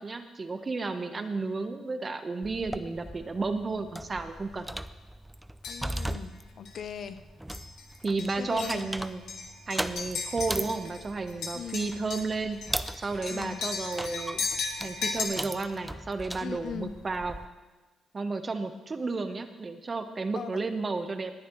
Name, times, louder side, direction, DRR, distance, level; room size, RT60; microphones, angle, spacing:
voice 1, 0.0-4.7 8.0-9.2 9.7-12.6 12.9-14.5 14.8-17.3 18.1-21.3, right 3 dB, 30° right, 8 dB, 1.0 m, -32 dB
sound 1, 2.4-17.5, right 1 dB, 5° right, 0.5 m, -39 dB
sound 2, 5.6-6.1 6.7-6.8 7.5-7.8 8.2-11.0 11.3-15.2, left 4 dB, 75° left, 2.0 m, -36 dB
voice 2, 5.7-7.2 8.4-8.9 11.5-11.9 13.3-13.6 16.4-16.9 20.4-20.6, left 7 dB, 60° left, 11 dB, 0.6 m, -39 dB
19.0 x 10.0 x 3.1 m, 1.2 s
cardioid pair, 90°, 0 cm